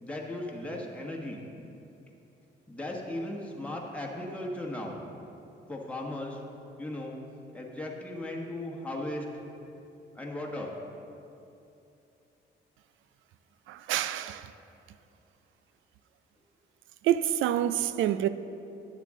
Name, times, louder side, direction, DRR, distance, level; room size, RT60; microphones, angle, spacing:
voice 1, 0.0-1.4 2.7-5.0 5.7-6.4 6.8-7.1 7.5-9.3 10.1-10.7, left 1 dB, 5° left, 1.3 m, -36 dB
voice 2, 13.7-14.5 17.0-18.3, right 11 dB, 80° right, 0.4 m, -27 dB
10.5 x 8.4 x 3.7 m
cardioid pair, 90°, 20 cm